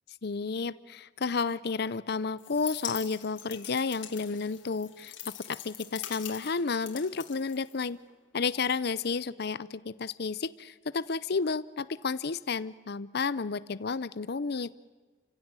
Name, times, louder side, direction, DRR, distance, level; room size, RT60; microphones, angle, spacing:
voice 1, 0.2-5.1 5.5-8.0 8.3-14.7, left 4 dB, 55° left, 17 dB, 0.6 m, -31 dB
sound 1, 2.4-8.1, left 11 dB, 75° left, 3.0 m, -43 dB
29.5 x 16.0 x 8.9 m, 1.4 s
head